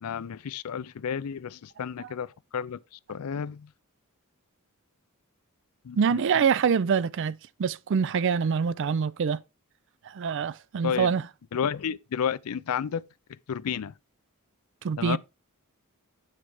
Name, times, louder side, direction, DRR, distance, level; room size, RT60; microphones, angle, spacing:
voice 1, 0.0-3.7 5.8-6.4 10.8-11.1 11.5-13.0 13.5-13.9 15.0-15.2, left 7 dB, 80° left, 0.4 m, -32 dB
voice 2, 6.0-9.4 10.1-11.3 14.8-15.2, right 6 dB, 55° right, 0.4 m, -25 dB
8.6 x 4.6 x 4.6 m
head